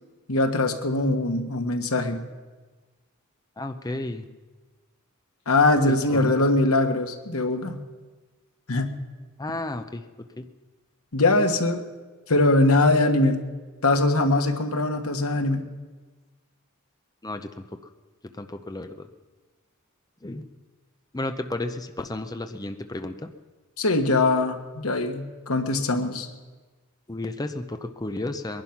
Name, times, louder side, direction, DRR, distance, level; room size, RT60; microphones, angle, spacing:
voice 1, 0.3-2.2 5.5-7.8 8.7-8.9 11.1-11.8 12.3-13.4 13.8-15.7 23.8-26.3, left 2 dB, 85° left, 5 dB, 1.5 m, -22 dB
voice 2, 3.6-4.3 5.9-6.5 9.4-10.5 17.2-17.7 18.4-19.1 20.2-20.4 21.1-23.3 27.1-28.6, left 2 dB, 20° left, 7 dB, 0.7 m, -33 dB
21.5 x 11.5 x 5.9 m, 1.3 s
head